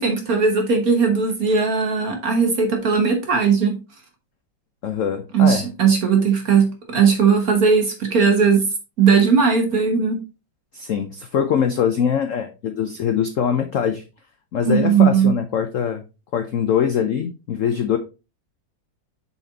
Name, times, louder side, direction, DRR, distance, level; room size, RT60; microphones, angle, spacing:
voice 1, 0.0-3.8 5.3-8.6 9.0-10.2 14.6-15.3, right 6 dB, 50° right, 4 dB, 1.4 m, -18 dB
voice 2, 4.8-5.6 10.7-14.0 14.5-16.0 16.3-18.0, left 8 dB, 75° left, 7 dB, 0.7 m, -22 dB
7.0 x 4.2 x 3.9 m, 0.30 s
omnidirectional pair, 2.2 m